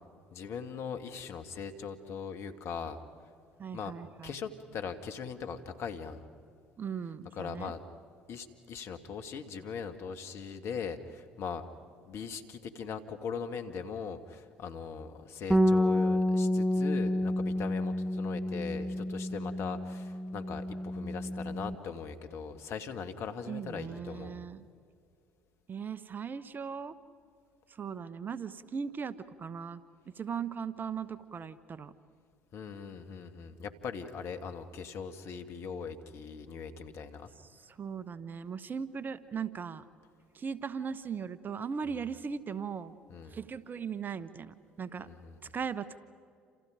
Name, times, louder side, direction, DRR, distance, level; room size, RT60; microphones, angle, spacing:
voice 1, 0.3-3.0 3.7-3.9 4.2-6.2 7.3-7.8 8.3-11.6 12.1-24.5 32.5-37.3 41.9-42.0 43.1-43.4 45.0-45.4, left 6 dB, 55° left, 8 dB, 2.0 m, -40 dB
voice 2, 3.6-4.4 6.8-7.7 23.4-24.7 25.7-27.0 27.7-31.9 37.5-39.8 40.3-42.9 43.3-45.1 45.5-46.0, right 6 dB, 35° right, 16 dB, 1.3 m, -38 dB
Bass guitar, 15.5-21.8, left 1 dB, 5° right, 1.0 m, -29 dB
29.0 x 28.0 x 5.1 m, 2.3 s
hypercardioid pair, 60°, 5 cm